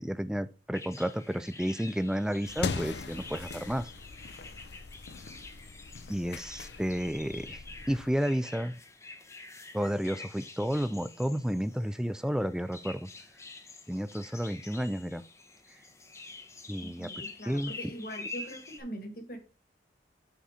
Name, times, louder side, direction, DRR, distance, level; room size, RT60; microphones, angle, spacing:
voice 1, 0.0-3.9 6.1-8.8 9.7-13.1 13.9-15.2 16.7-17.1 17.5-17.7, equal, 5° right, 0.3 m, -31 dB
sound 1, 0.7-18.8, left 3 dB, 15° left, 0.7 m, -47 dB
sound 2, 2.4-8.1, left 4 dB, 70° left, 0.6 m, -40 dB
voice 2, 16.8-19.4, equal, 50° left, 1.5 m, -42 dB
5.8 x 4.1 x 4.9 m
head